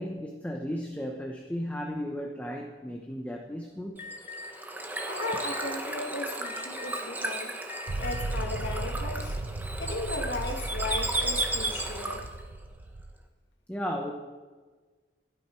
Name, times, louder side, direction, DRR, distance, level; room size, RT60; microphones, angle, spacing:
voice 1, 0.0-4.0 13.7-14.1, equal, 10° left, 1 dB, 1.1 m, -35 dB
Alarm, 4.0-4.5 5.2-5.8 6.4-7.1 7.7-8.3, left 3 dB, 40° left, 0.8 m, -41 dB
Bird / Water, 4.0-12.4, right 1 dB, 10° right, 1.3 m, -34 dB
voice 2, 5.0-7.5 8.0-9.4 9.8-12.2, left 2 dB, 85° left, 2 dB, 2.0 m, -36 dB
sound 1, 7.9-13.1, right 2 dB, 85° right, 0.9 m, -35 dB
27.5 x 9.7 x 4.5 m, 1.4 s
head